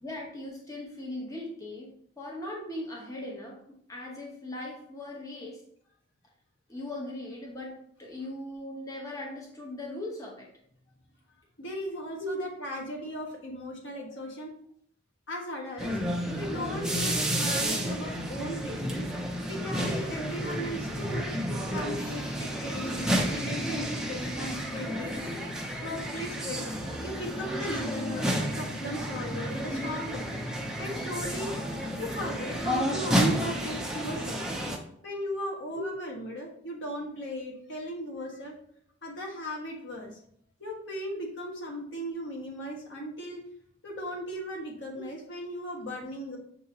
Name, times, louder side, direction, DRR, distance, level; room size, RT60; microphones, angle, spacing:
voice 1, 0.0-3.6 3.9-5.6 6.7-7.7 8.0-10.5 12.2-12.4 20.4-20.5 35.7-36.0 44.9-45.0, left 1 dB, 20° left, -2 dB, 0.8 m, -39 dB
voice 2, 11.6-14.5 15.3-15.9 16.4-19.1 19.5-21.3 21.7-25.3 25.8-30.3 30.8-31.5 32.0-34.4 35.0-38.5 39.0-40.1 40.6-43.4 43.8-46.4, equal, 80° left, -1 dB, 1.3 m, -37 dB
sound 1, 15.8-34.8, equal, 5° right, 0.5 m, -31 dB
6.6 x 2.8 x 2.8 m, 0.66 s
head